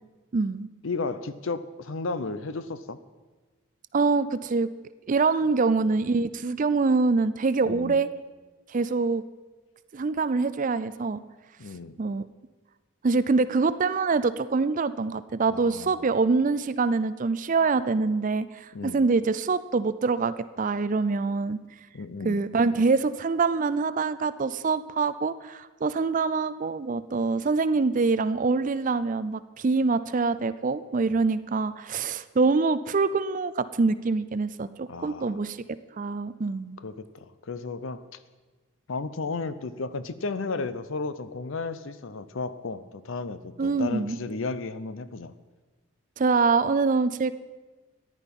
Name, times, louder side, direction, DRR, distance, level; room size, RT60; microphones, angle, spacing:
voice 1, 0.3-0.7 3.9-4.7 5.1-8.1 8.7-9.2 9.9-11.2 12.0-12.3 13.0-21.6 22.2-35.6 36.0-36.8 43.6-44.2 46.2-47.3, right 4 dB, 35° right, 14 dB, 0.4 m, -25 dB
voice 2, 0.8-3.0 7.7-8.0 11.6-12.0 15.5-16.1 18.7-19.0 21.9-22.4 34.9-35.4 36.8-38.2 38.9-45.3, left 3 dB, 60° left, 14 dB, 0.6 m, -34 dB
14.0 x 11.0 x 5.4 m, 1.3 s
head